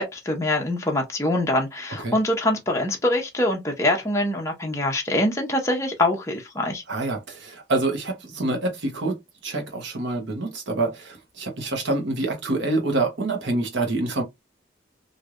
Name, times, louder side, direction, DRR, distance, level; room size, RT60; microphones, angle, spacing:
voice 1, 0.0-6.8, left 1 dB, 15° left, 0.6 m, -24 dB
voice 2, 6.9-9.2 9.4-14.2, right 2 dB, 75° right, 1.0 m, -26 dB
3.1 x 2.6 x 2.4 m
head